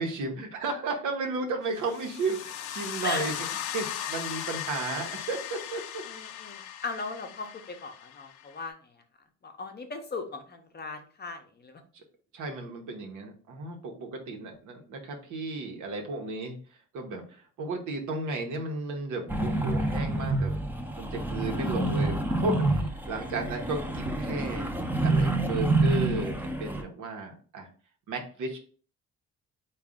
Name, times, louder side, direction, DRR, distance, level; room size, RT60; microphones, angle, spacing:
voice 1, 0.0-3.3 3.7-6.0 12.3-16.6 16.9-20.6 20.9-24.7 25.0-27.7 28.1-28.6, right 3 dB, 80° right, 3 dB, 0.9 m, -34 dB
sound 1, 1.8-8.7, left 10 dB, 85° left, 0.5 m, -38 dB
voice 2, 6.1-8.7 9.4-11.8, left 3 dB, 35° left, 5 dB, 0.7 m, -37 dB
sound 2, 19.3-26.8, right 2 dB, 5° right, 0.6 m, -28 dB
3.8 x 2.3 x 3.5 m, 0.42 s
cardioid pair, 90°, 30 cm